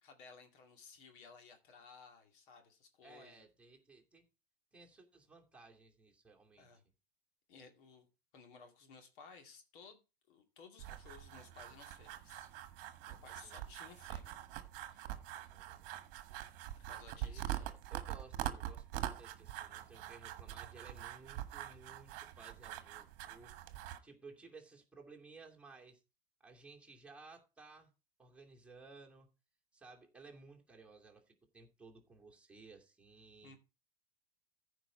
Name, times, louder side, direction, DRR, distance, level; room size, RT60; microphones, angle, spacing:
voice 1, 0.0-3.5 6.6-6.8 7.5-8.1 8.3-10.0 10.3-12.5 13.1-14.4 14.9-15.2 16.8-17.7 33.4-33.6, left 5 dB, 55° left, 2.4 m, -58 dB
voice 2, 3.0-4.2 4.7-6.7 13.4-13.6 15.3-15.8 17.1-26.0 26.4-27.9 28.2-29.3 29.7-33.5, right 3 dB, 5° right, 2.5 m, -58 dB
sound 1, 10.8-24.0, right 13 dB, 45° right, 1.4 m, -44 dB
15.0 x 5.1 x 4.4 m
figure-of-eight pair, 95°, 31 cm